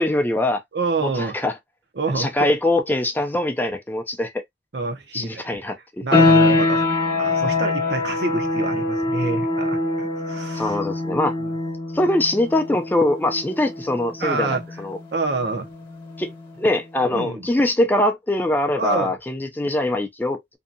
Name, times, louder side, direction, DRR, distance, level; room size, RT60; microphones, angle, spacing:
voice 1, 0.0-0.6 1.0-1.5 2.1-4.3 5.1-6.0 10.6-11.3 11.9-15.0 16.2-16.3 16.6-20.6, left 1 dB, 10° left, 0.4 m, -22 dB
voice 2, 0.7-1.4 1.9-2.5 4.7-5.6 6.0-6.9 7.2-10.8 11.4-11.5 14.2-14.8 15.1-15.7 17.1-17.5 18.8-19.1, right 3 dB, 70° right, 0.7 m, -27 dB
sound 1, 6.1-16.6, left 2 dB, 30° left, 0.9 m, -23 dB
2.7 x 2.3 x 2.5 m
head